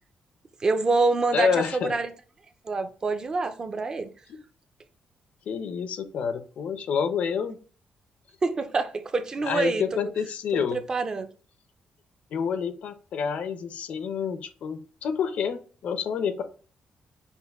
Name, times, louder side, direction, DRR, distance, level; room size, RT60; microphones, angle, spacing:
voice 1, 0.6-2.1 2.6-4.1 8.4-10.0 10.7-11.3, right 3 dB, 30° right, 0.5 m, -26 dB
voice 2, 1.3-1.9 4.3-4.4 5.5-7.6 9.4-10.8 12.3-16.4, left 6 dB, 65° left, 0.6 m, -28 dB
5.6 x 2.5 x 3.5 m
cardioid pair, 160°, 3 cm